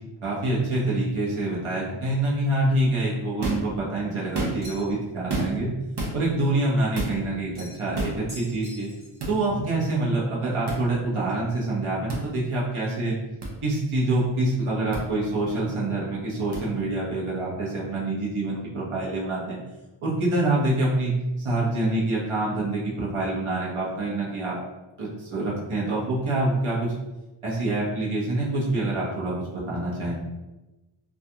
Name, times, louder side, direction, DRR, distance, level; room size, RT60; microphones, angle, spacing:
voice 1, 0.2-5.7 6.1-8.9 9.3-13.2 13.6-19.6 20.0-21.1 21.4-24.6 25.0-26.9 27.4-30.2, right 2 dB, 80° right, -5 dB, 0.9 m, -26 dB
sound 1, 3.4-3.7 4.2-4.8 5.3-5.7 6.0-6.2 6.9-7.2 7.9-8.2 9.2-9.3 10.7-10.8 12.1-12.2 13.4-13.5 14.9-15.0 16.5-16.6, right 2 dB, 55° right, 0.6 m, -29 dB
sound 2, 4.6-5.1 7.5-7.9 8.3-9.3, left 1 dB, 30° right, 1.0 m, -44 dB
2.4 x 2.2 x 2.7 m, 1.1 s
wide cardioid pair, 75°, 49 cm